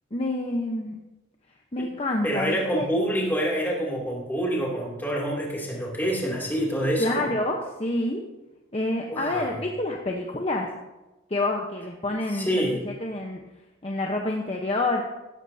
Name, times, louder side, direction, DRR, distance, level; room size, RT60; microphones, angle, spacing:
voice 1, 0.1-1.0 1.7-2.9 7.0-8.2 8.7-10.7 11.3-13.4 13.8-15.0, left 2 dB, 30° left, 1 dB, 1.0 m, -28 dB
voice 2, 2.2-7.3 9.1-9.5 12.3-12.9, equal, 10° left, -3 dB, 2.8 m, -27 dB
16.0 x 14.0 x 2.8 m, 1.0 s
head